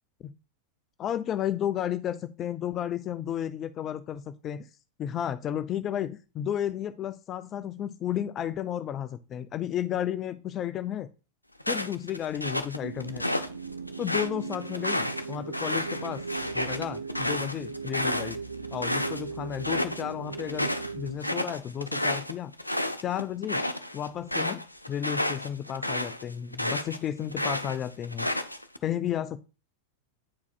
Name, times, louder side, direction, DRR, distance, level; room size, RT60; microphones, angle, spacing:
voice 1, 1.0-4.7 5.0-11.1 11.7-13.2 14.0-16.2 16.5-18.4 18.7-22.5 23.0-23.6 23.9-28.3 28.8-29.4, left 10 dB, 30° left, 12 dB, 0.4 m, -33 dB
sound 1, 11.6-13.5 13.9-19.2 19.5-20.0 20.3-27.0 27.3-28.8, left 1 dB, 85° left, 0.5 m, -31 dB
sound 2, 12.8-21.2, right 5 dB, 80° right, 0.4 m, -38 dB
9.3 x 4.7 x 2.3 m, 0.32 s
figure-of-eight pair, 90°, 0 cm